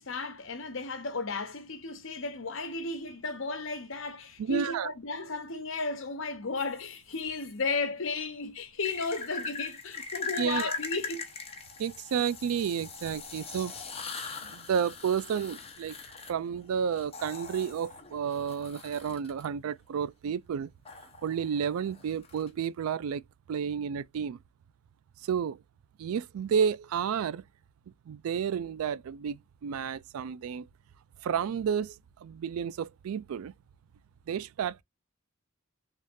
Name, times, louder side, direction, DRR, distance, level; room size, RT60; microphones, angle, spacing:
voice 1, 0.0-11.2, left 3 dB, 70° left, 0.9 m, -34 dB
voice 2, 4.4-4.9 10.4-10.7 11.8-13.7 14.5-16.0 16.3-20.7 21.2-23.2 23.5-24.4 25.2-25.6 26.0-27.4 28.1-30.7 31.2-33.5 34.3-34.8, right 7 dB, 90° right, 0.3 m, -31 dB
sound 1, 6.6-7.5 8.8-19.5 20.9-22.7, left 5 dB, 30° left, 0.9 m, -41 dB
3.6 x 3.6 x 2.6 m
head